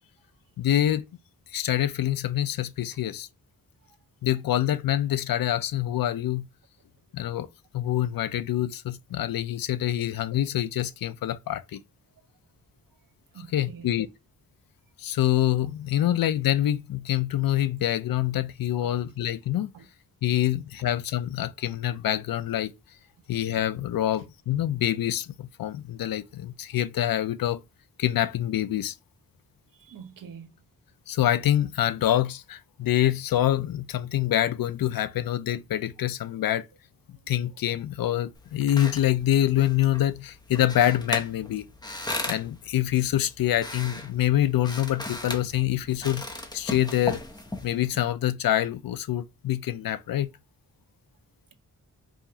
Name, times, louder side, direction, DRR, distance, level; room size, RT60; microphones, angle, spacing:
voice 1, 0.6-1.1 1.5-3.3 4.2-6.5 7.1-7.5 7.7-11.8 13.4-14.1 15.0-19.7 20.2-22.7 23.3-27.6 28.0-28.9 31.1-36.7 37.3-41.6 42.3-46.2 46.5-47.2 47.6-50.3, left 12 dB, 85° left, 0.5 m, -26 dB
voice 2, 13.3-13.9 18.8-18.9 19.7-19.8 29.8-30.6, right 7 dB, 75° right, 0.8 m, -45 dB
sound 1, 38.3-48.0, left 2 dB, 10° left, 0.8 m, -37 dB
4.9 x 2.4 x 2.8 m
wide cardioid pair, 85°, 34 cm